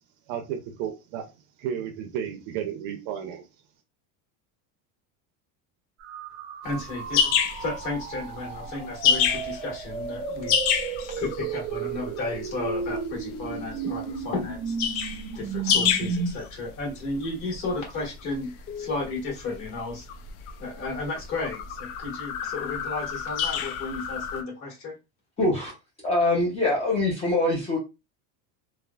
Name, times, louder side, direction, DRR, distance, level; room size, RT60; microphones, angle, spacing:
voice 1, 0.3-1.3 1.6-3.4, right 9 dB, 75° right, 7 dB, 0.6 m, -33 dB
sound 1, 6.0-16.3, right 5 dB, 35° right, 0.6 m, -34 dB
voice 2, 6.6-14.7 15.3-20.0 20.6-24.9, left 3 dB, 45° left, -2 dB, 1.6 m, -33 dB
sound 2, 6.7-24.4, left 7 dB, 75° left, 0.6 m, -29 dB
voice 3, 25.4-25.7 26.0-27.8, left 2 dB, 15° left, -4 dB, 0.4 m, -23 dB
3.3 x 2.0 x 2.2 m, 0.27 s
cardioid pair, 170°, 42 cm